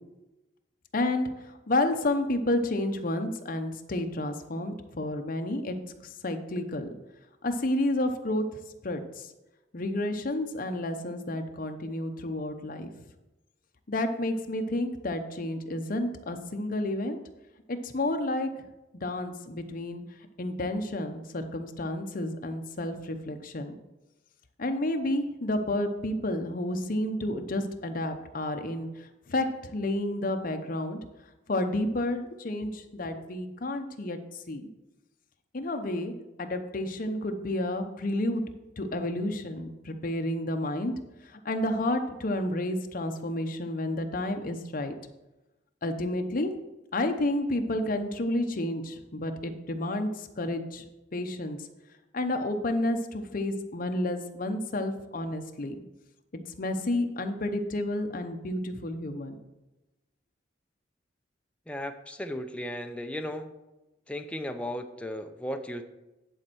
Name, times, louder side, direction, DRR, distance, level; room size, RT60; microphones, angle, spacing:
voice 1, 0.9-1.3 1.7-5.8 6.2-6.9 7.4-8.4 8.8-9.3 9.7-12.9 13.9-17.2 17.7-18.5 19.0-20.0 20.4-23.7 24.6-28.9 29.3-31.0 31.5-34.2 34.5-34.7 35.5-36.1 36.4-38.4 38.8-40.9 41.4-44.9 45.8-46.5 46.9-50.1 50.4-50.8 51.1-51.6 52.1-55.7 56.6-59.4, left 1 dB, 50° left, 6 dB, 0.8 m, -30 dB
voice 2, 61.7-63.5 64.1-65.8, left 1 dB, 5° left, 6 dB, 0.5 m, -35 dB
10.5 x 4.3 x 6.1 m, 1.0 s
head